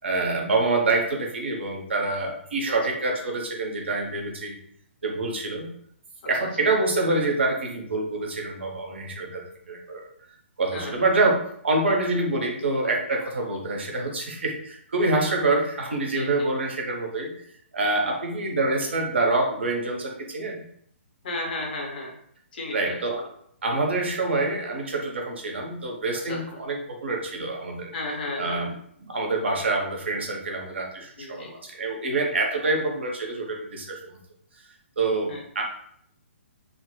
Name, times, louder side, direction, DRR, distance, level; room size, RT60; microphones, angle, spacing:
voice 1, 0.0-4.6 5.0-5.7 6.3-10.1 10.6-17.3 17.7-20.6 22.7-23.3 23.6-27.9 28.4-34.2 35.0-35.6, right 2 dB, 60° right, 1 dB, 0.7 m, -26 dB
voice 2, 10.7-11.1 16.1-16.5 21.2-22.2 22.5-23.0 26.3-26.4 27.9-28.7 31.2-31.5 35.3-35.4, left 2 dB, 45° left, -1 dB, 0.9 m, -33 dB
3.6 x 2.1 x 2.2 m, 0.65 s
figure-of-eight pair, 130°, 7 cm